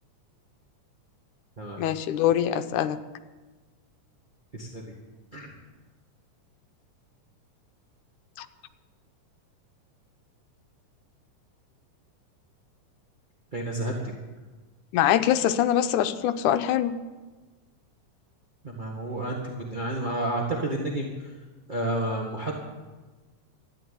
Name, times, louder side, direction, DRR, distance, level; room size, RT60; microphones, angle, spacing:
voice 1, 1.8-3.0 8.4-8.5 14.9-16.9, left 11 dB, 80° left, 10 dB, 2.0 m, -23 dB
voice 2, 4.5-4.8 5.3-5.5 13.5-14.1 18.6-21.3 21.7-22.6, right 1 dB, 30° right, -2 dB, 0.9 m, -30 dB
13.5 x 10.0 x 9.4 m, 1.3 s
omnidirectional pair, 3.7 m